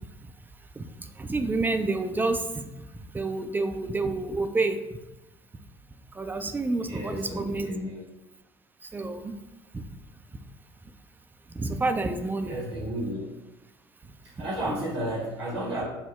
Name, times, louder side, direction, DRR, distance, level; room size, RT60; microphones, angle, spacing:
voice 1, 1.2-2.4 3.1-4.8 6.2-7.7 8.9-9.4 9.7-9.8 11.6-12.6, right 3 dB, 15° right, 7 dB, 0.3 m, -28 dB
voice 2, 6.8-8.0 12.4-13.2 14.2-15.8, right 1 dB, 80° right, -5 dB, 1.2 m, -33 dB
5.5 x 2.0 x 2.3 m, 0.99 s
figure-of-eight pair, 60°, 13 cm